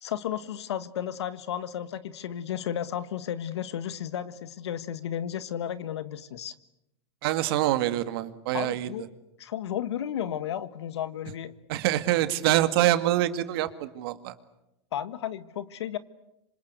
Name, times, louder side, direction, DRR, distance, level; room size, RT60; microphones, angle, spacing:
voice 1, 0.0-6.5 8.5-9.1 9.4-11.5 14.9-16.0, left 10 dB, 85° left, 14 dB, 1.6 m, -33 dB
voice 2, 7.2-8.9 11.7-14.3, right 14 dB, 60° right, 11 dB, 2.1 m, -25 dB
26.5 x 26.0 x 8.3 m, 0.88 s
supercardioid pair, 135°, 14 cm